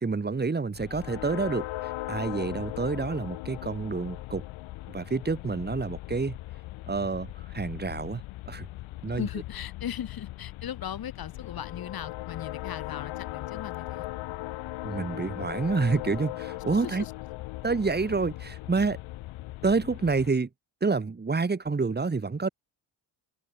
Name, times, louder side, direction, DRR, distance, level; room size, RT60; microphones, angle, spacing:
voice 1, 0.0-4.4 4.9-6.4 6.9-7.3 7.5-8.7 9.0-9.3 14.8-17.0 17.6-19.0 19.6-20.5 20.8-22.5, right 4 dB, 20° right, 1.6 m, -28 dB
sound 1, 0.7-20.3, left 17 dB, 85° left, 1.2 m, -38 dB
voice 2, 9.0-14.1 16.7-17.1, left 10 dB, 50° left, 1.4 m, -38 dB
cardioid pair, 85°, 46 cm